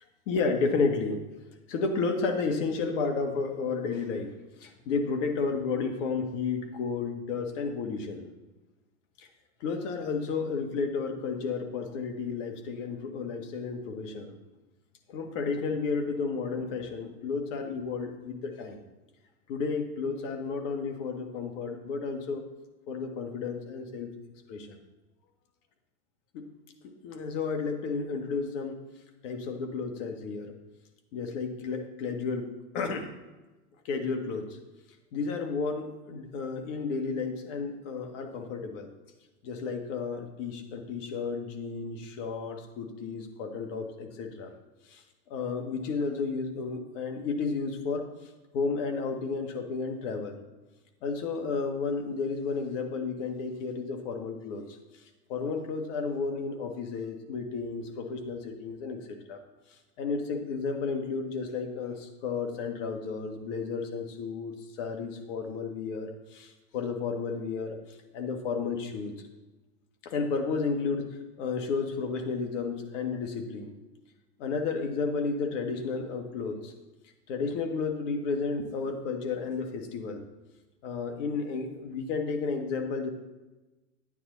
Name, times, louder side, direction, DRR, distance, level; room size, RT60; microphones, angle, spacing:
voice 1, 0.3-1.2 1.7-4.3 4.6-8.3 9.2-9.3 9.6-14.4 15.1-18.8 19.5-22.5 22.9-24.1 24.5-24.8 26.3-26.4 26.8-28.8 29.2-30.5 31.1-33.1 33.9-34.5 35.1-38.9 39.4-44.5 44.9-45.0 45.3-48.1 48.5-50.4 51.0-54.7 55.3-59.4 60.0-67.8 68.1-69.2 70.0-73.7 74.4-76.7 77.3-80.3 80.8-83.1, left 4 dB, 50° left, 5 dB, 1.8 m, -32 dB
10.0 x 9.4 x 4.0 m, 1.1 s
hypercardioid pair, 115°, 46 cm